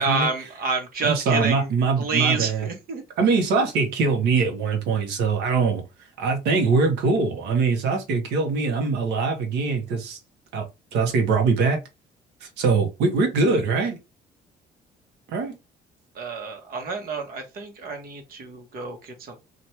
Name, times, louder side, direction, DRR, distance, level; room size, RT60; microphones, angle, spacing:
voice 1, 0.0-1.7 2.0-3.0 16.2-19.4, right 4 dB, 60° right, 1.1 m, -28 dB
voice 2, 1.0-2.7 3.2-5.8 6.2-10.2 10.5-10.6 10.9-11.8 12.4-14.0 15.3-15.6, right 4 dB, 90° right, 1.0 m, -22 dB
2.9 x 2.5 x 3.2 m
cardioid pair, 110°, 17 cm